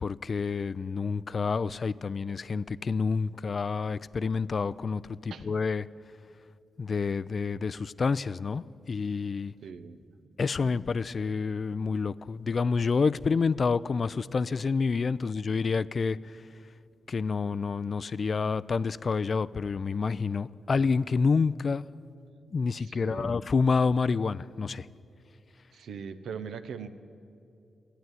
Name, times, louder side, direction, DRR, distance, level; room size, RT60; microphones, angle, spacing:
voice 1, 0.0-5.9 6.8-9.5 10.4-16.4 17.1-21.8 22.5-24.9, left 4 dB, 55° left, 0.3 m, -28 dB
voice 2, 9.6-10.1 22.8-23.4 25.7-26.9, right 6 dB, 80° right, 0.6 m, -41 dB
13.0 x 9.0 x 9.6 m
supercardioid pair, 50°, 0 cm